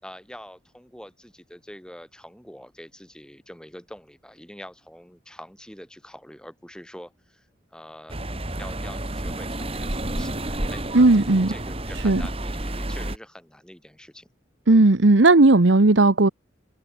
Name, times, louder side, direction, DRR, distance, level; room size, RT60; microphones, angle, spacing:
voice 1, 0.0-8.2 8.6-10.9 11.1-14.3, equal, 5° left, 5.7 m, -45 dB
sound 1, 8.1-13.2, right 1 dB, 30° right, 3.5 m, -30 dB
voice 2, 10.9-11.5 12.0-12.2 14.7-16.3, right 2 dB, 85° right, 1.1 m, -15 dB
head